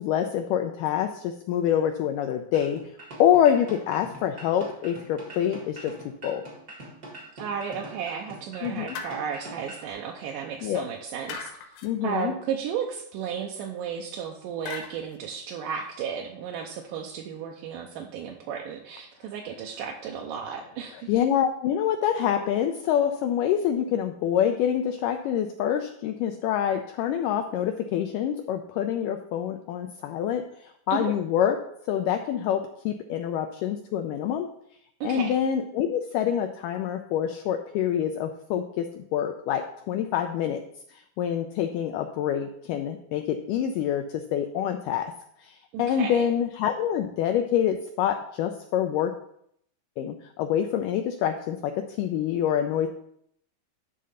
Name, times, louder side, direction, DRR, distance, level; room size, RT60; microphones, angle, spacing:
voice 1, 0.0-2.9 3.2-5.9 6.2-6.4 8.6-9.0 10.6-10.8 11.8-12.3 20.9-31.6 31.9-34.5 35.0-40.6 40.9-45.1 45.4-49.1 50.0-52.9, left 9 dB, 90° left, 6 dB, 1.9 m, -26 dB
sound 1, 2.5-9.9, right 1 dB, 50° right, 1.0 m, -44 dB
voice 2, 7.4-11.5 12.0-21.1 30.9-31.1 35.0-35.4 45.7-46.3, right 7 dB, 80° right, 1 dB, 2.1 m, -34 dB
sound 2, 8.9-9.6 11.3-11.9 14.7-15.2, left 6 dB, 70° left, 2.5 m, -38 dB
11.0 x 3.7 x 5.5 m, 0.71 s
omnidirectional pair, 4.4 m